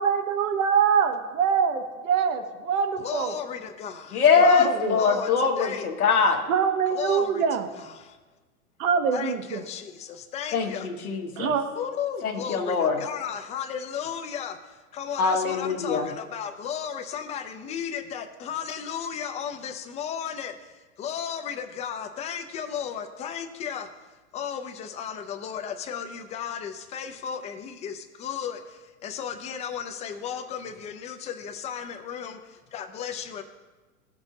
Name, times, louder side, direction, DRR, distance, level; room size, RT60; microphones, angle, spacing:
voice 1, 0.0-3.4 4.4-5.0 6.5-7.7 8.8-9.7 11.4-11.6, right 7 dB, 65° right, 7 dB, 1.0 m, -24 dB
voice 2, 3.0-4.1 4.4-5.3 5.6-5.9 6.9-7.4 7.7-7.8 9.1-10.9 11.8-14.6 14.9-20.5 21.0-23.9 24.3-28.6 29.0-32.4 32.7-33.4, left 8 dB, 15° left, 7 dB, 0.4 m, -34 dB
voice 3, 4.1-6.4 10.5-11.5 12.2-13.0 15.2-16.1, left 6 dB, 90° left, 2 dB, 1.2 m, -23 dB
14.5 x 5.3 x 2.7 m, 1.2 s
hypercardioid pair, 115°, 43 cm